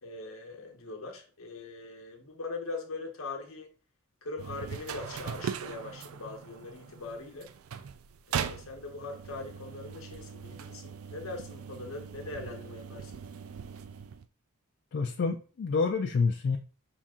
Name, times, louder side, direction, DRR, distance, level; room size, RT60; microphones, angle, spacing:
voice 1, 0.0-3.7 4.2-7.5 8.3-13.2, left 3 dB, 70° left, 1.0 m, -41 dB
sound 1, 4.4-14.3, right 7 dB, 75° right, 0.4 m, -40 dB
voice 2, 14.9-16.6, left 4 dB, 50° left, 0.3 m, -28 dB
5.7 x 2.5 x 3.6 m
head